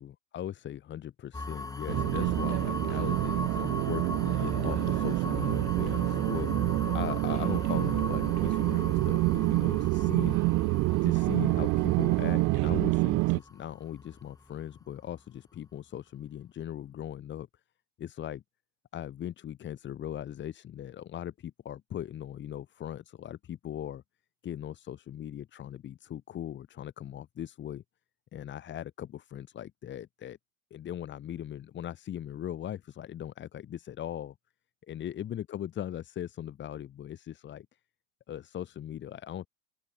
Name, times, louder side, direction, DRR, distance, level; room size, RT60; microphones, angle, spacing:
voice 1, 0.0-10.4 11.0-17.5 18.0-18.4 18.9-24.0 24.4-27.8 28.3-30.4 30.7-34.3 34.9-37.7 38.3-39.5, left 11 dB, 25° left, 1.5 m, -39 dB
sound 1, 1.3-15.1, left 3 dB, 10° left, 2.3 m, -39 dB
sound 2, 1.9-13.4, right 23 dB, 35° right, 0.7 m, -27 dB
open air
hypercardioid pair, 90°, 41 cm